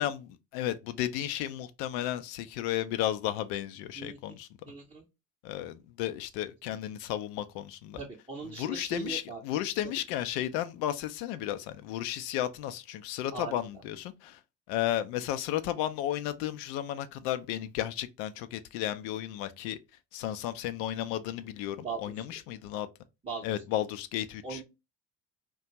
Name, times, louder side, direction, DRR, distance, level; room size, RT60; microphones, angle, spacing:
voice 1, 0.0-4.5 5.4-8.0 8.6-14.4 14.7-19.8 20.1-22.9 23.4-24.6, left 12 dB, 70° left, 0.5 m, -33 dB
voice 2, 4.7-5.1 7.9-9.4 13.3-13.8 21.8-22.2 23.2-23.6 24.4-24.6, right 4 dB, 10° right, 0.6 m, -39 dB
2.5 x 2.2 x 2.8 m
hypercardioid pair, 65°, 50 cm